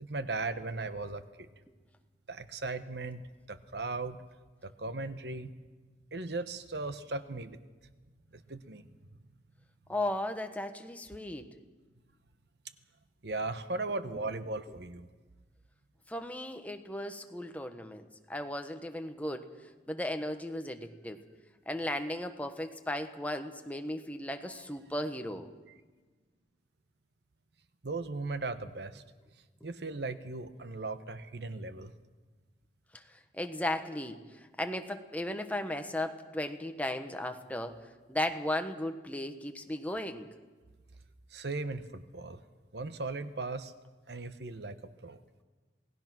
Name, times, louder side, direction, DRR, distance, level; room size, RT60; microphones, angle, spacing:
voice 1, 0.0-1.5 2.3-4.2 4.6-5.5 6.1-7.6 8.3-8.9 13.2-15.1 27.8-29.0 29.6-31.9 41.3-42.4 42.7-43.7 44.1-44.8 45.0-45.2, right 3 dB, 70° right, 11 dB, 1.1 m, -37 dB
voice 2, 9.9-11.5 16.1-19.5 19.9-21.2 21.7-25.5 32.9-37.8 38.1-40.3, left 1 dB, 10° left, 6 dB, 1.3 m, -36 dB
27.5 x 18.5 x 6.1 m, 1.3 s
head